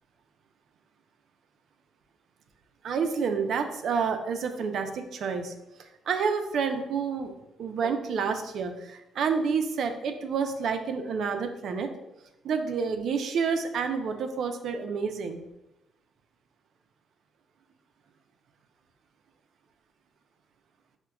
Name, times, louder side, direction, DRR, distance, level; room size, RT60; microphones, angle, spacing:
voice 1, 2.8-5.5 6.1-7.3 7.6-11.9 12.4-15.4, right 5 dB, 65° right, 6 dB, 0.4 m, -29 dB
5.7 x 2.1 x 2.2 m, 0.92 s
cardioid pair, 90°, 0 cm